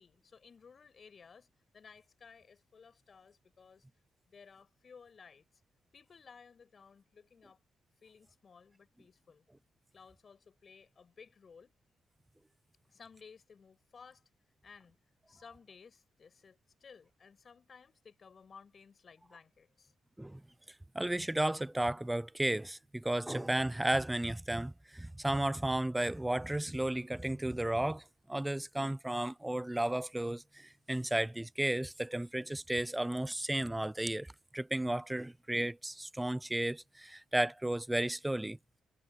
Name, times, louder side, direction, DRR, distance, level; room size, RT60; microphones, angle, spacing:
voice 1, 0.0-1.5 1.7-3.8 4.3-5.5 5.9-7.6 8.0-9.5 9.9-11.7 12.9-14.2 14.6-15.0 15.3-19.9, left 5 dB, 45° left, 5.3 m, -57 dB
voice 2, 20.9-38.6, right 1 dB, 10° right, 0.4 m, -33 dB
cardioid pair, 90°, 0 cm